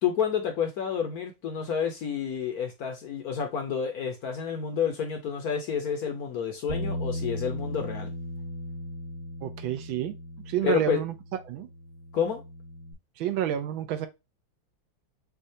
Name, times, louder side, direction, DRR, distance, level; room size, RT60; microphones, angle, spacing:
voice 1, 0.0-8.1 10.6-11.0 12.1-12.4, left 7 dB, 60° left, 1.1 m, -29 dB
Bass guitar, 6.7-12.9, left 1 dB, 40° right, 1.0 m, -37 dB
voice 2, 9.4-10.1 10.5-11.7 13.2-14.1, right 11 dB, 80° right, 1.4 m, -29 dB
6.5 x 2.4 x 2.7 m
omnidirectional pair, 2.2 m